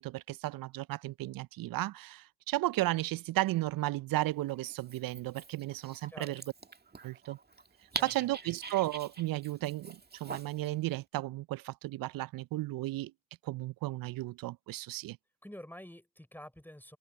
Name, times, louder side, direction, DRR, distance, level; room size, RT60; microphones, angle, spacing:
voice 1, 0.0-6.4 7.0-7.4 8.0-13.1 13.4-15.2, right 17 dB, 65° right, 0.6 m, -34 dB
Dog, 4.5-10.7, right 4 dB, 25° right, 2.0 m, -45 dB
voice 2, 15.4-17.0, equal, 5° left, 5.4 m, -48 dB
open air
hypercardioid pair, 55°, 37 cm